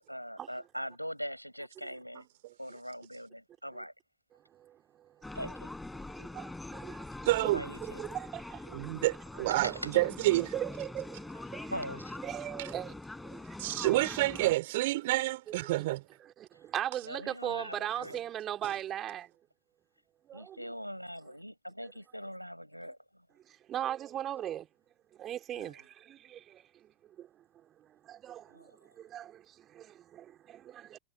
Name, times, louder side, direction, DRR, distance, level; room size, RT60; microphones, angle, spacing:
voice 1, 0.1-2.3 2.6-3.9 5.3-5.7 7.4-8.0 9.5-9.9 11.7-12.2 17.0-18.2 20.3-23.3 25.5-25.8 28.5-28.8, equal, 90° left, 7.7 m, -41 dB
voice 2, 4.3-5.4 6.0-7.5 7.8-9.1 9.3-9.4 10.0-10.1 10.4-11.7 12.2-13.7 15.5-15.9 16.2-19.3 20.3-20.6 23.5-24.7 25.1-27.3 27.8-31.0, right 11 dB, 30° right, 3.9 m, -40 dB
sound 1, 5.2-14.5, left 2 dB, 5° left, 6.8 m, -43 dB
voice 3, 7.3-7.6 8.7-10.5 13.6-16.0, right 18 dB, 50° right, 4.7 m, -28 dB
figure-of-eight pair, 90°, 0 cm